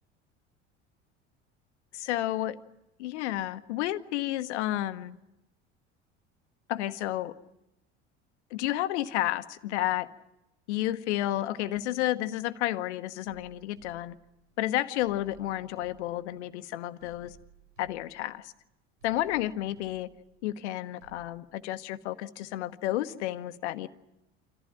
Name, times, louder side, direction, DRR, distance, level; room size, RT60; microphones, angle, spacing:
voice 1, 1.9-2.6 3.0-5.2 6.7-7.3 8.5-10.1 10.7-14.1 14.6-17.4 17.8-18.5 19.0-20.1 20.4-23.9, left 14 dB, 75° left, 12 dB, 1.0 m, -31 dB
sound 1, 13.3-14.5 15.0-16.6 17.0-18.6 19.0-20.6 21.0-21.3, right 7 dB, 85° right, 5.3 m, -59 dB
27.0 x 14.5 x 9.0 m, 0.91 s
hypercardioid pair, 65°, 35 cm